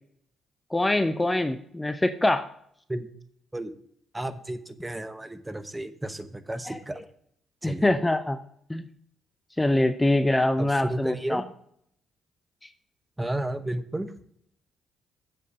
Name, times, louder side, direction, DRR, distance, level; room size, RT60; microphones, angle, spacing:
voice 1, 0.7-2.5 6.7-6.8 7.6-8.4 8.7-8.9 9.6-11.4, left 1 dB, 15° left, 10 dB, 0.6 m, -24 dB
voice 2, 4.1-7.0 7.6-7.8 10.6-11.4 13.2-14.1, right 1 dB, 15° right, 11 dB, 0.9 m, -32 dB
7.4 x 6.8 x 4.9 m, 0.67 s
hypercardioid pair, 45°, 0 cm